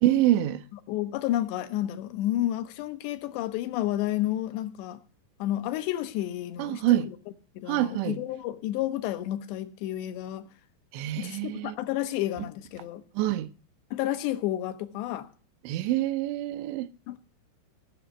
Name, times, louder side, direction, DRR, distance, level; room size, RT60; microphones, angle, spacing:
voice 1, 0.0-0.6 6.6-7.1 7.7-8.2 10.9-11.7 13.2-13.5 15.6-16.9, right 13 dB, 85° right, 3.1 m, -26 dB
voice 2, 0.9-5.0 5.4-7.2 7.6-10.5 11.2-13.0 13.9-15.3 17.1-17.2, left 13 dB, 80° left, 3.0 m, -31 dB
17.0 x 6.2 x 7.9 m
omnidirectional pair, 5.0 m